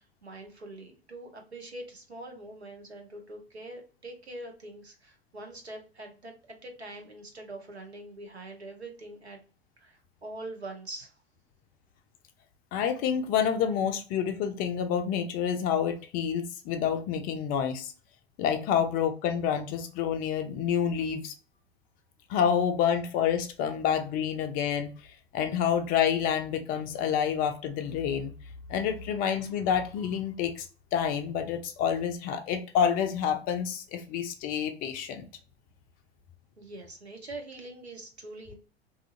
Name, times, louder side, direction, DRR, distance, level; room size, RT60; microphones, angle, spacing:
voice 1, 0.0-9.4 9.8-11.1 36.6-38.5, right 2 dB, 85° right, 3 dB, 0.7 m, -44 dB
voice 2, 12.7-17.9 18.4-21.3 22.3-24.9 25.3-28.3 28.7-30.7 30.9-35.3, left 8 dB, 30° left, 6 dB, 0.4 m, -28 dB
2.7 x 2.4 x 2.5 m, 0.39 s
figure-of-eight pair, 80°, 31 cm